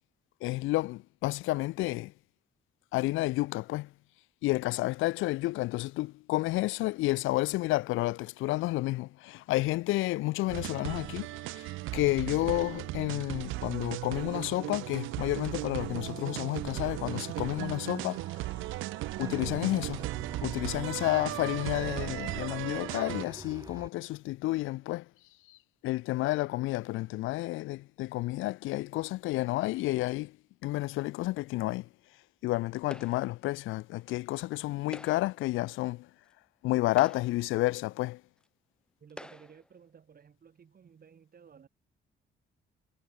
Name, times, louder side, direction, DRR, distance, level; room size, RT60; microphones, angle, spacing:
voice 1, 0.4-2.1 2.9-3.9 4.4-18.5 19.2-20.1 20.4-25.1 25.5-25.6 25.8-30.4 30.6-31.9 32.4-36.1 36.6-38.2, left 18 dB, 85° left, 0.4 m, -31 dB
sound 1, 10.5-23.2, right 19 dB, 85° right, 0.4 m, -37 dB
sound 2, 16.6-23.9, right 2 dB, 15° right, 4.0 m, -48 dB
sound 3, 32.9-33.4 34.8-35.4 36.3-36.4 36.9-37.5 38.4-38.5 39.1-39.7, left 1 dB, 5° left, 0.7 m, -47 dB
voice 2, 39.0-41.7, right 7 dB, 50° right, 7.8 m, -55 dB
cardioid pair, 90°, 20 cm